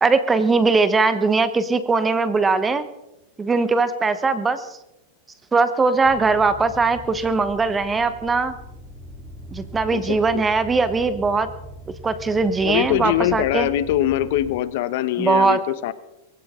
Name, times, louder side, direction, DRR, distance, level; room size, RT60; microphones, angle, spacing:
voice 1, 0.0-2.9 3.4-4.7 5.5-8.5 9.5-11.5 12.0-13.7 15.2-15.6, right 4 dB, 15° right, 12 dB, 1.0 m, -20 dB
sound 1, 6.0-14.6, left 1 dB, 10° left, 2.6 m, -40 dB
voice 2, 9.9-10.5 12.6-15.9, left 13 dB, 65° left, 14 dB, 1.0 m, -23 dB
22.0 x 16.0 x 3.7 m, 0.91 s
supercardioid pair, 140°, 0 cm